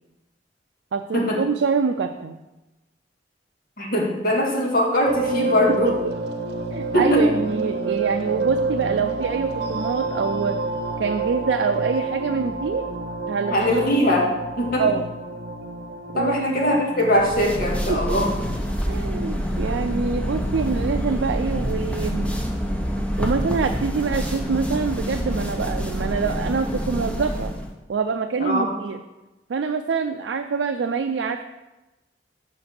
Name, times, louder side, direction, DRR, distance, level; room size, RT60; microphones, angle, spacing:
voice 1, 0.9-2.4 5.8-6.0 6.7-10.6 11.0-12.8 13.3-13.8 14.8-15.1 16.1-16.7 17.9-18.0 18.9-22.3 23.2-27.5 27.9-29.0 29.5-31.4, right 5 dB, 85° right, 5 dB, 0.4 m, -25 dB
voice 2, 3.8-5.9 6.9-7.3 13.5-14.3 14.6-14.8 16.2-18.3 28.4-28.7, equal, 55° left, -2 dB, 1.7 m, -21 dB
sound 1, 5.1-18.6, right 3 dB, 60° right, 0.8 m, -29 dB
sound 2, 17.2-27.7, equal, 5° left, 0.7 m, -27 dB
5.7 x 5.1 x 6.4 m, 1.0 s
head